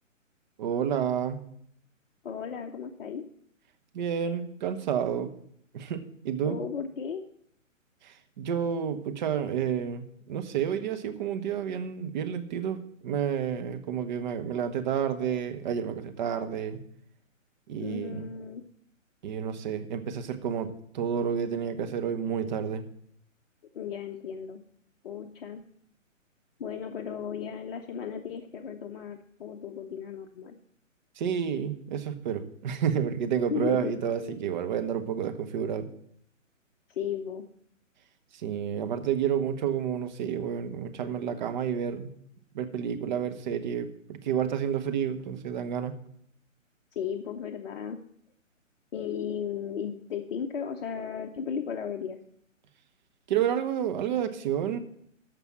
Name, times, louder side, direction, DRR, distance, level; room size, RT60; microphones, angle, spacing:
voice 1, 0.6-1.4 3.9-5.3 5.7-6.6 8.0-16.8 17.7-18.3 19.2-20.7 20.9-22.8 31.2-35.9 38.3-42.1 42.5-46.0 53.3-54.8, right 8 dB, 35° right, 8 dB, 1.1 m, -30 dB
voice 2, 2.2-3.3 6.4-7.2 17.8-18.6 23.7-24.6 25.0-25.6 26.6-30.6 33.5-33.9 36.9-37.4 46.9-48.0 48.9-52.2, left 7 dB, 45° left, 3 dB, 0.9 m, -35 dB
14.0 x 5.4 x 7.2 m, 0.67 s
hypercardioid pair, 145°, 39 cm